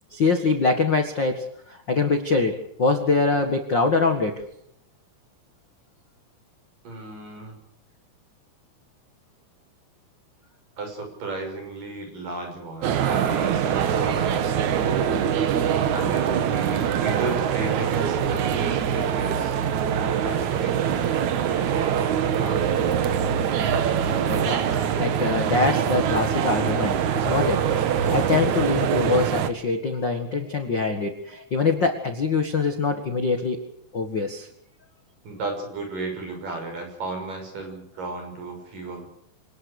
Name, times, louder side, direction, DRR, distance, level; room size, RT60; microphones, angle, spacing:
voice 1, 0.1-4.4 23.5-23.6 24.3-33.6 33.9-34.5, left 4 dB, 70° left, 6 dB, 1.0 m, -24 dB
voice 2, 6.8-7.6 10.8-15.0 15.9-19.6 20.0-21.1 21.4-23.0 35.2-39.1, right 3 dB, 45° right, 4 dB, 7.6 m, -34 dB
sound 1, 12.8-29.5, right 8 dB, 65° right, 1.9 m, -23 dB
26.0 x 19.0 x 6.6 m, 0.71 s
omnidirectional pair, 5.2 m